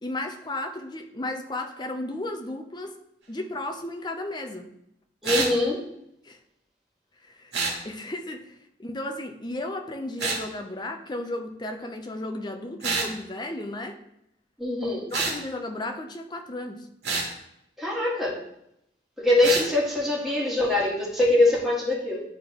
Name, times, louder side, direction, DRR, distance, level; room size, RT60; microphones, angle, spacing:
voice 1, 0.0-3.0 3.3-4.7 6.2-6.4 7.2-7.6 7.8-14.0 15.1-16.9, left 1 dB, 25° left, 5 dB, 0.6 m, -34 dB
voice 2, 5.2-5.8 14.6-15.1 17.8-18.4 19.2-22.2, left 2 dB, ahead, -7 dB, 1.8 m, -23 dB
sound 1, 5.2-5.5 7.5-7.8 10.2-10.4 12.8-13.1 15.1-15.4 17.0-17.3 19.4-19.7, right 4 dB, 75° right, 1.5 m, -27 dB
10.5 x 3.7 x 3.0 m, 0.79 s
head